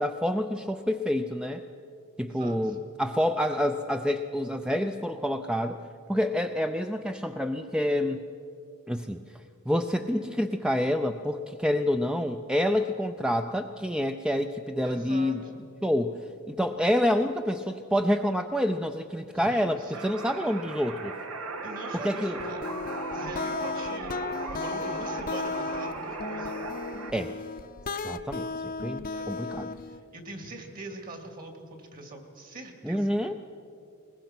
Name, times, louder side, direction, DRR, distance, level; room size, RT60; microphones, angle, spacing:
voice 1, 0.0-1.6 2.2-5.8 6.1-8.2 8.9-9.2 9.7-15.4 15.8-21.1 22.0-22.4 27.1-27.3 28.0-29.7 32.8-33.5, equal, 5° right, 7 dB, 0.5 m, -28 dB
voice 2, 2.3-2.8 14.8-15.6 19.3-20.1 21.6-22.7 23.1-26.6 29.1-29.4 29.7-33.3, right 2 dB, 45° right, 4 dB, 2.6 m, -43 dB
sound 1, 19.9-27.1, right 3 dB, 85° right, 1.9 m, -37 dB
sound 2, 22.4-30.0, left 4 dB, 40° left, 0.7 m, -35 dB
22.0 x 20.0 x 6.1 m, 2.4 s
head